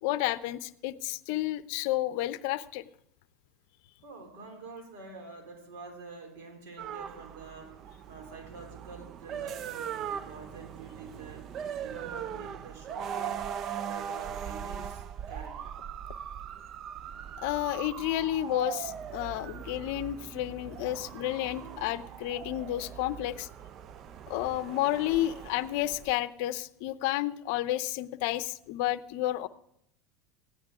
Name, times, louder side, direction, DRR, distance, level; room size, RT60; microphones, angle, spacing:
voice 1, 0.0-2.8 17.4-23.5 24.3-29.5, left 14 dB, 65° left, 15 dB, 0.6 m, -31 dB
voice 2, 4.0-11.5 11.8-13.5 13.8-15.7 21.1-21.3 21.6-21.8 22.5-22.6, right 4 dB, 65° right, 3 dB, 3.4 m, -47 dB
sound 1, 6.8-26.1, right 8 dB, 45° right, 0.5 m, -40 dB
16.0 x 11.0 x 3.6 m, 0.73 s
hypercardioid pair, 80°, 0 cm